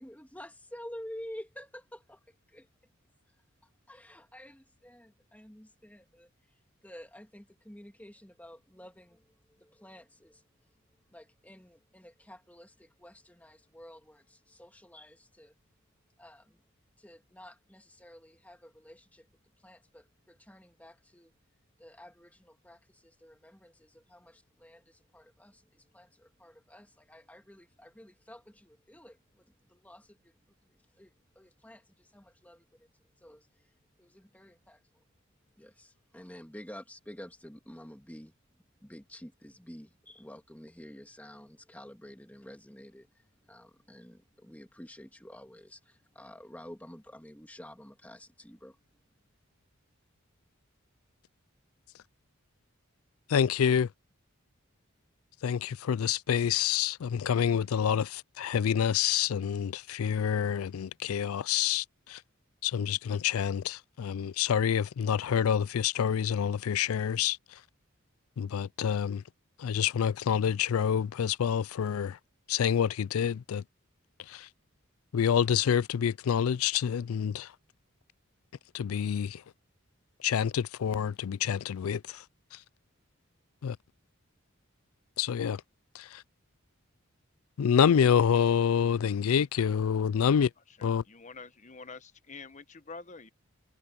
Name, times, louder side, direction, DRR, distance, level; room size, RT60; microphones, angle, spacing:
voice 1, 0.0-2.2 2.5-2.7 3.9-6.3 6.8-9.2 9.5-10.4 11.1-15.5 16.2-16.6 17.0-19.3 19.6-21.3 21.8-30.3 30.6-32.9 33.2-33.5 34.0-34.8 35.6-38.3 38.8-48.8, equal, 5° left, 2.3 m, -50 dB
voice 2, 53.3-53.9 55.4-62.2 62.6-67.4 68.4-69.2 69.6-72.2 72.5-73.6 74.3-74.5 75.1-77.5 78.7-79.4 80.2-82.2 83.6-83.8 85.2-85.6 85.9-86.2 87.6-90.5 90.8-91.0, left 8 dB, 85° left, 0.4 m, -27 dB
voice 3, 90.7-93.3, left 4 dB, 35° left, 1.0 m, -47 dB
head